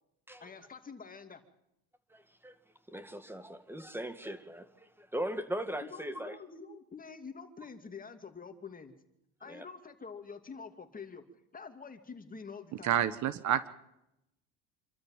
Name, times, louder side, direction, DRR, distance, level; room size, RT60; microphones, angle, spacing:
voice 1, 0.4-1.4 5.8-8.9 9.4-11.2 11.5-13.0, left 5 dB, 25° left, 7 dB, 2.6 m, -47 dB
voice 2, 2.1-2.5 2.9-6.4 9.5-9.6, right 1 dB, 5° right, 10 dB, 2.1 m, -39 dB
voice 3, 12.8-13.7, right 10 dB, 55° right, 15 dB, 1.3 m, -28 dB
27.0 x 13.0 x 7.4 m, 0.84 s
supercardioid pair, 95°, 35 cm